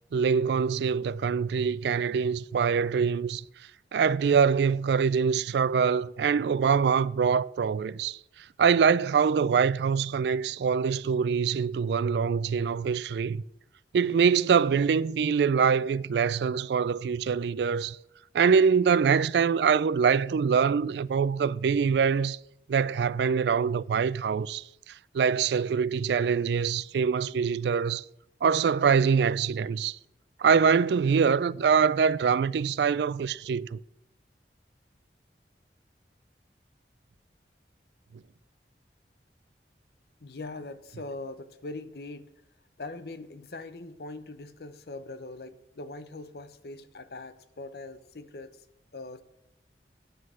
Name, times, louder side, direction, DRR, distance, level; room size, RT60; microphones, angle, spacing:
voice 1, 0.1-3.4 3.9-8.2 8.6-13.4 13.9-18.0 18.3-22.4 22.7-28.0 28.4-30.0 30.4-33.8, right 6 dB, 70° right, 0.3 m, -24 dB
voice 2, 40.2-42.3 42.8-48.6 48.9-49.2, left 2 dB, 60° left, 0.7 m, -41 dB
9.5 x 6.2 x 7.5 m
head